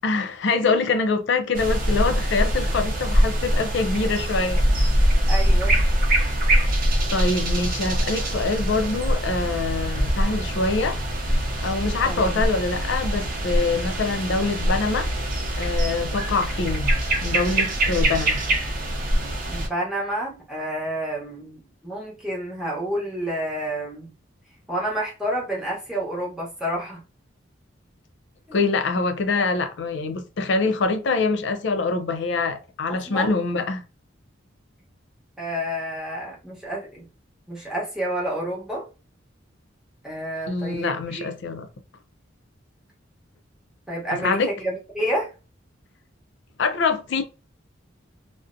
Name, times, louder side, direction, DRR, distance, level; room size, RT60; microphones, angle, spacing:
voice 1, 0.0-4.6 7.1-11.0 11.6-15.1 15.6-16.9 17.2-18.4 28.5-33.8 40.5-41.7 44.2-44.5 46.6-47.2, left 3 dB, 65° left, 0.4 m, -24 dB
sound 1, 1.5-19.7, right 1 dB, 45° right, 0.6 m, -23 dB
voice 2, 5.3-5.9 12.0-12.4 19.5-24.1 24.7-27.0 28.5-28.6 29.3-29.5 33.1-33.4 35.4-37.1 37.5-38.9 40.0-41.3 43.9-45.3, right 1 dB, 5° right, 0.9 m, -29 dB
2.5 x 2.1 x 2.5 m
head